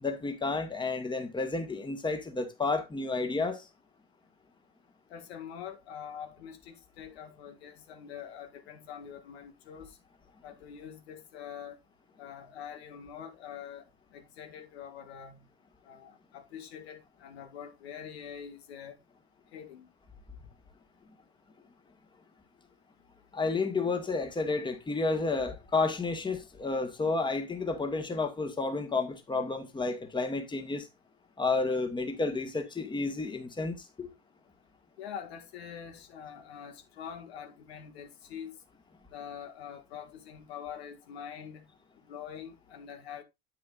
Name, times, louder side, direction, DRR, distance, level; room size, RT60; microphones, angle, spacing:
voice 1, 0.0-3.7 23.3-30.9 31.4-34.1, left 3 dB, 15° left, 1.6 m, -31 dB
voice 2, 5.1-10.0 10.4-11.8 12.2-13.9 14.1-15.5 15.8-19.0 19.5-19.9 35.0-38.6 39.1-41.6 42.1-43.2, left 8 dB, 80° left, 1.9 m, -44 dB
9.4 x 8.0 x 2.5 m
hypercardioid pair, 90°, 31 cm